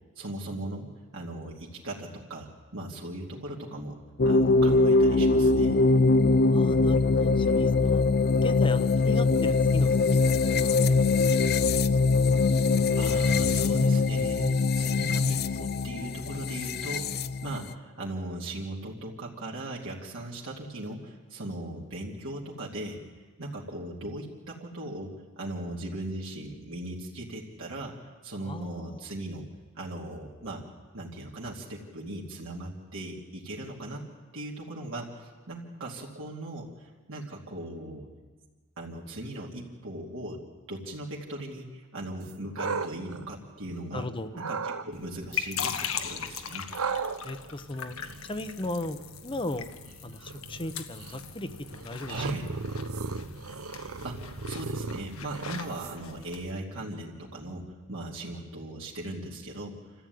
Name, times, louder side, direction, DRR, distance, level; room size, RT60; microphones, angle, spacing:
voice 1, 0.2-0.9 1.1-4.0 4.3-5.8 12.9-23.0 23.4-28.0 28.2-29.5 29.8-30.7 30.9-34.1 34.3-38.1 38.8-46.6 52.1-52.5 54.0-59.9, right 1 dB, 65° right, -3 dB, 2.6 m, -38 dB
sound 1, 4.2-17.7, left 3 dB, 50° left, 0.6 m, -23 dB
voice 2, 6.5-8.0 8.4-9.9 10.4-11.3 28.4-29.0 43.9-44.3 47.2-48.0 48.3-49.7 50.0-50.2 50.5-52.2, left 1 dB, 25° left, 11 dB, 1.0 m, -36 dB
sound 2, 42.2-43.9 44.3-44.9 46.7-56.2, right 4 dB, 85° right, 1.0 m, -37 dB
sound 3, 44.9-56.5, left 8 dB, 70° left, 1.3 m, -40 dB
27.5 x 14.5 x 9.4 m, 1.4 s
head